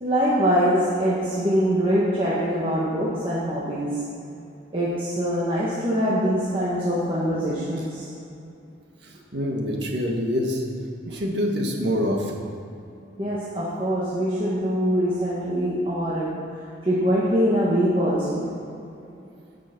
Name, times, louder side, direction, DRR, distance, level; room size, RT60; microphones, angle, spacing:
voice 1, 0.0-3.9 4.7-8.1 13.2-16.3 16.8-18.5, equal, 25° right, -8 dB, 1.7 m, -23 dB
voice 2, 9.0-10.6 11.0-12.4, equal, 65° right, 0 dB, 1.8 m, -26 dB
16.0 x 6.2 x 6.1 m, 2.7 s
head